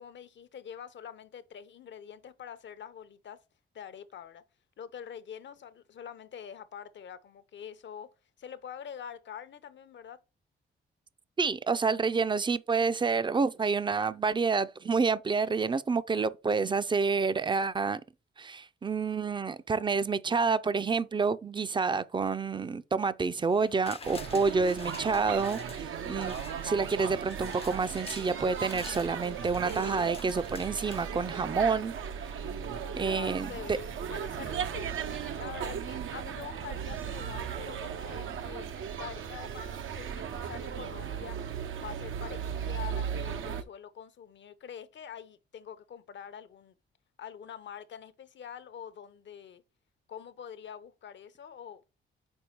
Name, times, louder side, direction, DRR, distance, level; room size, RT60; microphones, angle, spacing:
voice 1, 0.0-3.4 3.7-4.4 4.8-8.1 8.4-10.2 33.2-34.9 35.4-38.7 39.0-41.4 41.8-46.8 47.2-49.6 50.1-51.8, left 8 dB, 60° left, 0.7 m, -45 dB
voice 2, 11.4-18.0 18.4-26.4 26.6-31.9 32.9-33.8, right 4 dB, 20° right, 0.5 m, -28 dB
sound 1, 23.5-31.7 32.1-32.2, left 5 dB, 30° left, 0.5 m, -48 dB
sound 2, 24.0-43.6, right 7 dB, 70° right, 0.7 m, -36 dB
5.4 x 4.2 x 4.4 m
cardioid pair, 65°, 21 cm